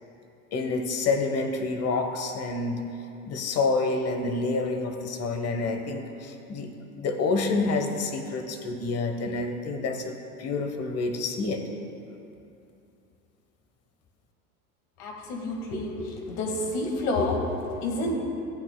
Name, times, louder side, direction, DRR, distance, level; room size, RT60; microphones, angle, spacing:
voice 1, 0.5-2.8 3.2-6.7 7.0-11.6, left 3 dB, 35° left, 6 dB, 1.2 m, -28 dB
voice 2, 15.0-18.2, left 2 dB, 60° left, 1 dB, 2.1 m, -29 dB
15.5 x 8.4 x 2.3 m, 2.7 s
hypercardioid pair, 90°, 44 cm